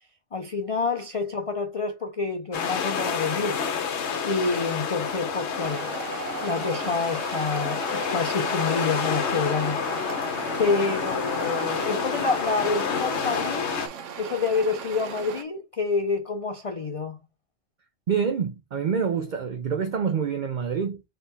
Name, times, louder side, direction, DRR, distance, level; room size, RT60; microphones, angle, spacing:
voice 1, 0.3-3.6 4.2-5.9 6.4-9.8 10.2-13.7 14.2-17.2, left 4 dB, 40° left, 0.5 m, -28 dB
sound 1, 2.5-13.9, left 6 dB, 65° left, 1.1 m, -29 dB
sound 2, 5.6-15.4, right 7 dB, 80° right, 1.1 m, -38 dB
voice 2, 18.1-21.0, right 6 dB, 55° right, 0.5 m, -26 dB
3.9 x 3.3 x 4.0 m
omnidirectional pair, 1.3 m